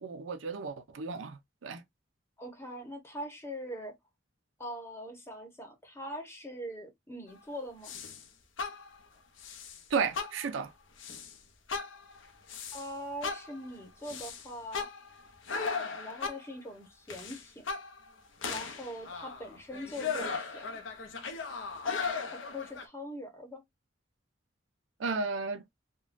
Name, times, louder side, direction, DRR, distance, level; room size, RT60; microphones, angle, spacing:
voice 1, 0.0-1.8 9.9-10.7 25.0-25.6, right 5 dB, 80° right, 0.5 m, -33 dB
voice 2, 2.4-3.9 4.6-8.0 12.7-14.9 15.5-17.6 18.5-20.7 21.8-23.6, equal, 15° left, 1.0 m, -42 dB
sound 1, 7.8-8.2 8.6-9.0 9.4-9.8 10.1-10.6 11.0-11.3 11.7-12.9 13.2-16.6 17.1-18.1 18.4-22.8, left 5 dB, 80° left, 0.7 m, -37 dB
3.6 x 2.2 x 2.5 m
head